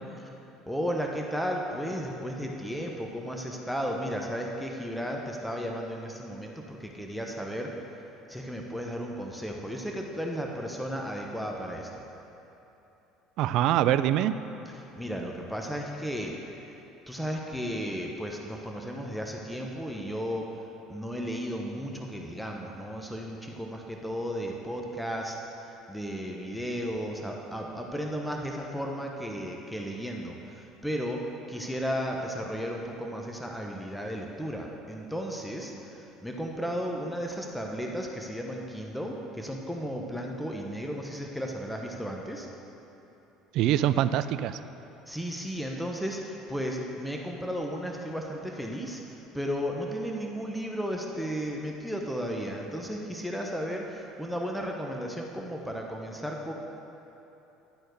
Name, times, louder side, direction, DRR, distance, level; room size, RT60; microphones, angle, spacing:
voice 1, 0.7-7.7 8.3-12.0 14.7-16.7 17.1-20.5 20.9-25.4 25.6-42.5 45.1-56.5, equal, ahead, 0 dB, 1.0 m, -34 dB
voice 2, 13.4-14.3 43.5-44.6, right 12 dB, 65° right, 13 dB, 0.3 m, -24 dB
11.5 x 4.3 x 6.5 m, 3.0 s
hypercardioid pair, 75°, 0 cm